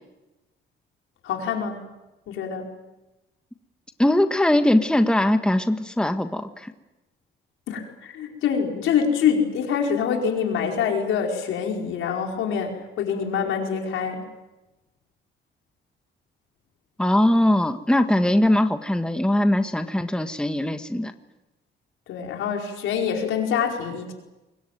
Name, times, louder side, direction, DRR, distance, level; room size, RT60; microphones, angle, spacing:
voice 1, 1.2-1.8 2.3-2.6 7.7-14.3 22.1-24.1, left 7 dB, 85° left, 2 dB, 5.0 m, -25 dB
voice 2, 4.0-6.7 17.0-21.1, left 1 dB, 5° left, 7 dB, 1.6 m, -21 dB
24.5 x 22.0 x 9.3 m, 1.0 s
cardioid pair, 90°, 20 cm